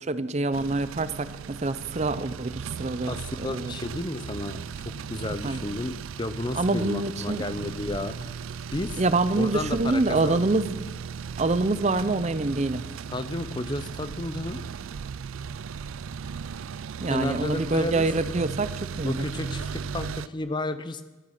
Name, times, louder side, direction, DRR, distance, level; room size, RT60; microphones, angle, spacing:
voice 1, 0.0-3.7 5.4-5.6 6.5-7.4 9.0-10.8 11.4-12.8 17.0-18.7 19.0-19.2, right 3 dB, 35° right, 13 dB, 0.6 m, -26 dB
sound 1, 0.5-20.3, right 6 dB, 85° right, 0.4 m, -37 dB
voice 2, 3.1-8.3 8.7-9.0 9.4-10.5 13.1-14.6 17.1-18.1 19.0-21.0, left 2 dB, 20° left, 11 dB, 0.6 m, -32 dB
13.0 x 12.5 x 6.5 m, 1.2 s
head